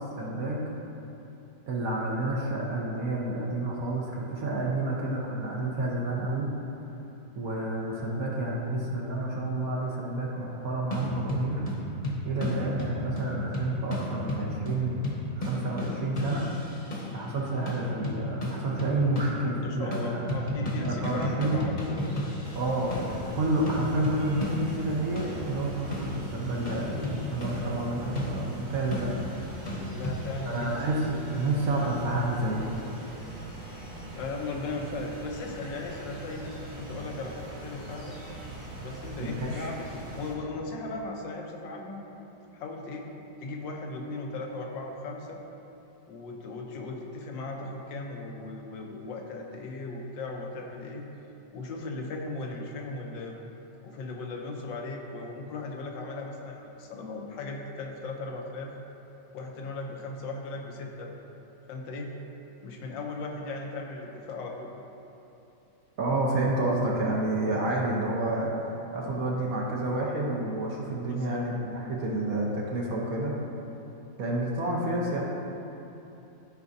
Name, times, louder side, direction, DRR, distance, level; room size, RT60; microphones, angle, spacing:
voice 1, 0.2-0.7 1.7-6.5 7.3-11.6 12.2-15.0 15.3-16.5 17.1-20.3 20.8-21.6 22.5-29.1 30.5-32.8 39.2-39.7 66.0-73.4 74.2-75.2, right 2 dB, 60° right, -3 dB, 1.2 m, -29 dB
sound 1, 10.9-17.3 17.7-19.6 19.9-30.2, left 1 dB, 30° left, 1.0 m, -34 dB
voice 2, 19.6-22.1 29.9-30.8 31.4-31.6 34.1-38.1 38.8-39.9 40.1-42.0 42.5-43.1 43.4-45.4 46.1-51.0 51.5-53.4 53.8-58.7 59.3-61.1 61.7-62.2 62.6-64.7 71.1-71.5, left 3 dB, 85° left, 1 dB, 1.5 m, -37 dB
sound 2, 22.4-40.3, right 1 dB, 85° right, 2.2 m, -42 dB
13.0 x 4.8 x 2.7 m, 2.9 s
omnidirectional pair, 2.0 m